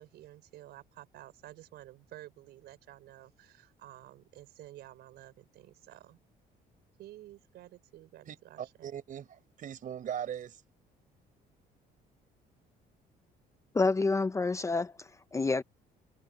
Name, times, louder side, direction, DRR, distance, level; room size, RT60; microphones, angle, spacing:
voice 1, 0.0-6.2 7.0-8.9, right 14 dB, 75° right, 4.6 m, -52 dB
voice 2, 8.3-10.6, right 9 dB, 50° right, 4.7 m, -40 dB
voice 3, 13.7-15.6, left 3 dB, 15° left, 0.7 m, -28 dB
cardioid pair, 110°, 17 cm